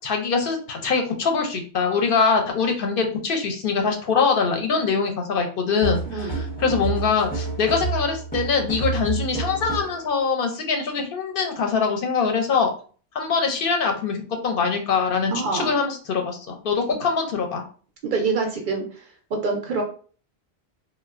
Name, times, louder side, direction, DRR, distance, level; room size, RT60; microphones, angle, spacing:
voice 1, 0.0-12.7 13.1-17.6, left 5 dB, 65° left, 4 dB, 0.7 m, -23 dB
sound 1, 5.8-10.0, right 4 dB, 15° left, 0.4 m, -29 dB
voice 2, 15.3-15.8 18.0-18.8 19.3-19.8, right 4 dB, 60° right, 2 dB, 0.6 m, -25 dB
3.2 x 2.1 x 2.3 m, 0.42 s
omnidirectional pair, 1.1 m